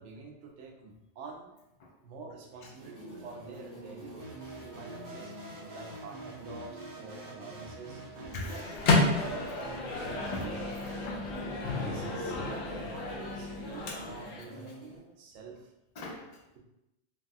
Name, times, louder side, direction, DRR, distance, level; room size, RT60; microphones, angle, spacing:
voice 1, 0.0-1.6 2.0-5.4 5.7-9.8 10.3-10.6 11.7-15.7, right 4 dB, 85° right, 2 dB, 0.9 m, -47 dB
sound 1, 2.7-15.0, right 1 dB, 15° right, 1.3 m, -48 dB
sound 2, 4.2-11.1, right 1 dB, 35° right, 0.3 m, -47 dB
voice 2, 8.3-9.6 10.1-11.3 14.3-14.4 15.5-15.6 15.9-16.4, left 2 dB, 55° left, 0 dB, 0.4 m, -43 dB
Microwave oven, 8.4-14.4, left 3 dB, 85° left, 1.0 m, -31 dB
3.2 x 2.3 x 2.6 m, 0.92 s
omnidirectional pair, 1.2 m